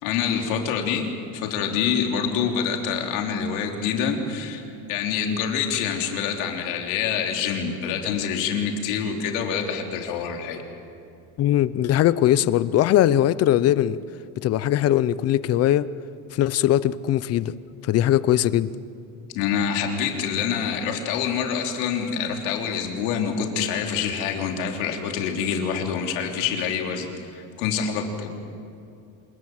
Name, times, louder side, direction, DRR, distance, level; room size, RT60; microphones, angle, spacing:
voice 1, 0.0-4.6 4.9-10.6 19.4-28.3, left 7 dB, 80° left, 2 dB, 3.5 m, -26 dB
voice 2, 11.4-14.0 14.4-15.9 16.3-17.5 17.8-18.7, left 12 dB, 35° left, 17 dB, 0.7 m, -20 dB
27.0 x 20.0 x 7.9 m, 2.5 s
cardioid pair, 145°, 41 cm